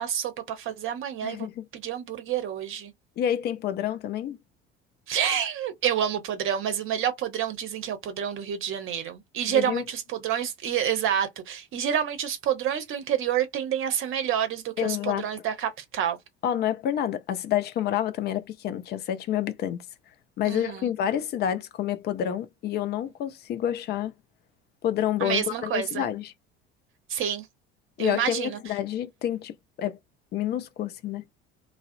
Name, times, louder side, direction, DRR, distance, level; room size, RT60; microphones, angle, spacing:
voice 1, 0.0-1.5 1.7-2.9 5.1-16.2 20.4-20.9 25.2-26.0 27.1-27.5 28.0-28.6, right 9 dB, 40° right, 0.8 m, -28 dB
voice 2, 1.2-1.6 3.2-4.4 9.5-9.8 14.8-15.3 16.4-19.8 20.4-24.1 24.8-26.3 28.0-30.0 30.3-31.2, left 10 dB, 30° left, 0.4 m, -28 dB
2.3 x 2.1 x 2.6 m
figure-of-eight pair, 60°, 33 cm